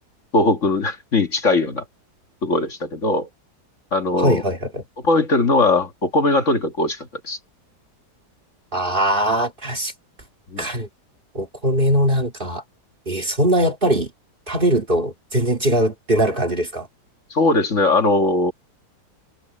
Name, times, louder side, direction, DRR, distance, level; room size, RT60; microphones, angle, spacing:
voice 1, 0.3-1.8 2.4-3.3 3.9-4.4 5.0-7.4 10.5-10.7 17.3-18.5, left 2 dB, 45° left, 2.0 m, -19 dB
voice 2, 4.2-4.8 8.7-9.9 10.6-10.9 11.3-12.6 13.1-14.1 14.5-16.9, right 1 dB, 30° right, 2.1 m, -21 dB
open air
omnidirectional pair, 1.8 m